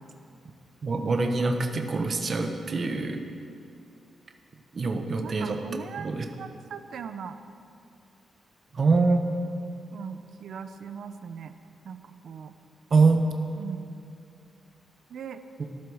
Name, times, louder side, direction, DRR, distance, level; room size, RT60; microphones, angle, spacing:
voice 1, 0.8-3.2 4.7-5.6 6.0-6.2 8.7-9.2 12.9-13.2, right 3 dB, 35° right, 4 dB, 1.2 m, -24 dB
voice 2, 4.8-7.4 9.9-11.6 11.8-12.5 13.6-14.0 15.1-15.4, right 6 dB, 65° right, 10 dB, 0.8 m, -40 dB
14.0 x 11.5 x 6.4 m, 2.5 s
wide cardioid pair, 160°, 0 cm